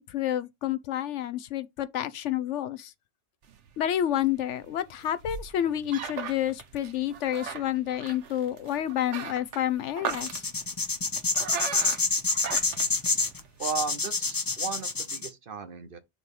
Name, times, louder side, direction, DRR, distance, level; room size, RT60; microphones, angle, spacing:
voice 1, 0.0-2.9 3.8-10.5, left 11 dB, 80° left, 1.0 m, -29 dB
sound 1, 3.4-13.7, right 6 dB, 75° right, 1.2 m, -39 dB
sound 2, 10.1-15.3, left 3 dB, 25° left, 0.5 m, -27 dB
voice 2, 13.6-16.0, right 5 dB, 50° right, 1.0 m, -35 dB
6.2 x 3.1 x 5.3 m
omnidirectional pair, 1.2 m